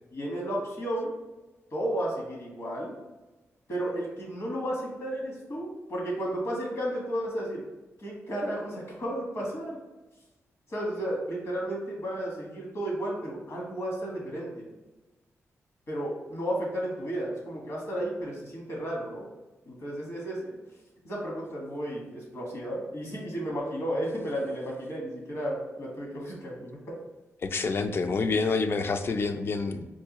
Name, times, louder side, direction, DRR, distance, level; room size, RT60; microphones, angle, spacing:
voice 1, 0.1-1.1 1.7-2.9 3.7-7.6 8.0-9.8 10.7-14.7 15.9-19.3 19.7-20.6 21.0-26.8, right 1 dB, 65° left, -2 dB, 1.3 m, -33 dB
voice 2, 27.4-29.9, left 4 dB, 45° left, 8 dB, 0.3 m, -27 dB
4.6 x 2.3 x 2.9 m, 1.1 s
cardioid pair, 80°, 5 cm